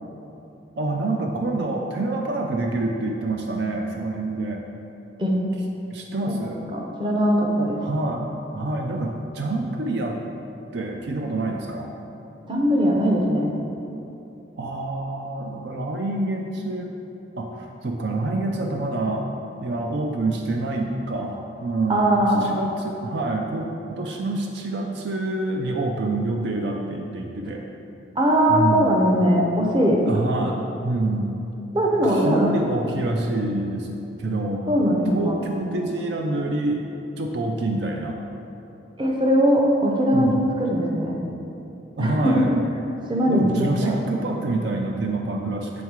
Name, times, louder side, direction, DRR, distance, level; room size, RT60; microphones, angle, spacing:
voice 1, 0.8-4.6 5.9-6.6 7.8-8.3 8.5-10.2 10.7-11.9 14.6-16.9 17.4-19.3 19.6-27.6 28.5-28.9 30.1-31.4 32.0-33.9 34.2-34.7 35.1-36.8 37.2-38.2 40.1-40.4 42.0-42.6 43.3-45.7, right 2 dB, 65° right, 1 dB, 0.4 m, -27 dB
voice 2, 6.7-7.8 12.5-13.5 21.9-22.4 28.2-30.0 31.7-32.5 34.7-35.4 39.0-41.2 42.0-42.6 43.1-43.4 43.8-43.9, equal, 25° right, -1 dB, 0.7 m, -20 dB
7.1 x 3.6 x 4.6 m, 2.9 s
head